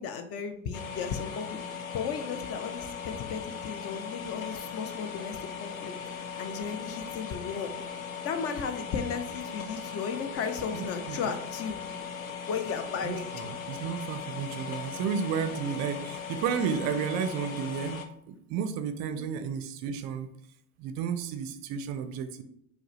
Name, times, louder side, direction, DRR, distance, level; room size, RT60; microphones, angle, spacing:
voice 1, 0.0-5.9 6.4-7.7 8.2-11.8 12.5-13.3 19.1-19.2, left 6 dB, 40° left, 8 dB, 0.5 m, -35 dB
sound 1, 0.7-18.1, left 7 dB, 85° left, 0.5 m, -39 dB
voice 2, 10.7-11.2 13.1-20.3 20.8-22.4, right 7 dB, 45° right, 9 dB, 0.5 m, -32 dB
4.5 x 2.1 x 3.0 m, 0.74 s
figure-of-eight pair, 70°, 40 cm